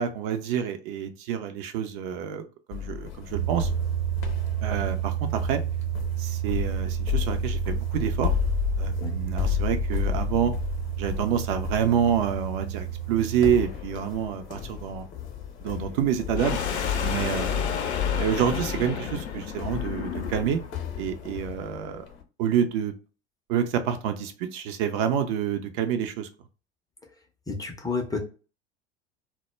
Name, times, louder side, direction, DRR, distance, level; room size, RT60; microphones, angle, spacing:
voice 1, 0.0-3.7 4.6-5.6 6.2-8.3 8.8-10.5 11.0-15.1 15.6-16.6 17.0-17.9 18.2-20.6 21.0-22.1 22.4-22.9 23.5-26.3, right 8 dB, 55° right, 7 dB, 0.5 m, -27 dB
sound 1, 2.7-22.2, left 10 dB, 40° left, 0.7 m, -33 dB
sound 2, 3.3-13.6, right 12 dB, 70° right, 0.9 m, -30 dB
sound 3, 16.4-20.7, left 7 dB, 80° left, 0.5 m, -32 dB
voice 2, 27.5-28.2, left 4 dB, 10° left, 2 dB, 0.4 m, -30 dB
2.1 x 2.0 x 3.0 m, 0.34 s
figure-of-eight pair, 75°, 33 cm